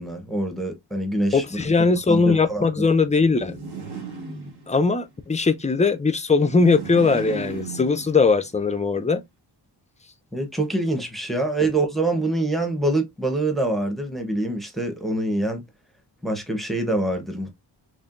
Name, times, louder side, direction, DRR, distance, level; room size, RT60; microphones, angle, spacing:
voice 1, 0.0-1.4 2.1-2.6 10.3-15.6 16.2-17.5, right 2 dB, ahead, 0.9 m, -25 dB
voice 2, 1.3-3.6 4.7-9.2, left 4 dB, 15° left, 0.4 m, -20 dB
sound 1, 3.3-5.0 6.4-8.5, right 4 dB, 60° right, 1.4 m, -36 dB
4.3 x 3.1 x 2.5 m
wide cardioid pair, 140°, 45 cm